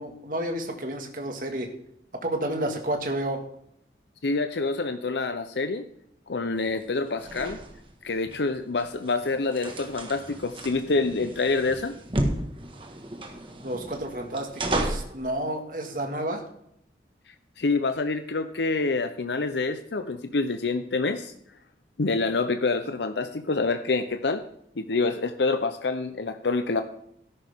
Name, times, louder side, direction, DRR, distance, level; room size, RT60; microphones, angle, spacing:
voice 1, 0.0-1.7 2.2-3.4 13.6-16.4, right 1 dB, 50° right, 3 dB, 1.9 m, -30 dB
voice 2, 4.2-5.8 6.3-7.6 8.0-11.9 17.6-21.3 22.0-24.4 24.8-26.8, left 3 dB, 80° left, 9 dB, 0.7 m, -27 dB
sound 1, 6.6-15.2, right 1 dB, 30° right, 1.6 m, -34 dB
13.5 x 11.0 x 3.6 m, 0.73 s
head